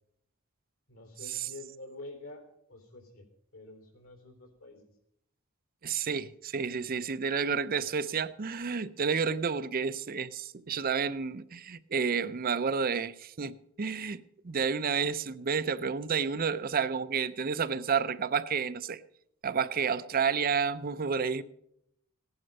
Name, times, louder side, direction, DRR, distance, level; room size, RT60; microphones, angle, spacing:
voice 1, 0.9-3.2 3.5-4.9, left 2 dB, 85° left, 3.7 m, -48 dB
voice 2, 5.8-19.0 19.4-21.4, right 6 dB, 45° right, 0.6 m, -30 dB
16.5 x 11.0 x 5.3 m
head